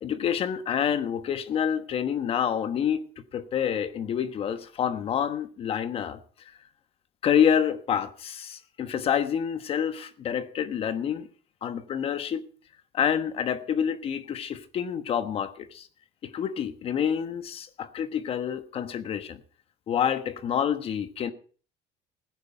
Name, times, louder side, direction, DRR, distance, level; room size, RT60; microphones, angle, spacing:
voice 1, 0.0-6.2 7.2-11.3 11.6-12.5 12.9-15.9 16.2-19.4 19.9-21.3, left 8 dB, 40° left, 1.1 m, -28 dB
16.5 x 9.6 x 4.6 m
cardioid pair, 125°, 14 cm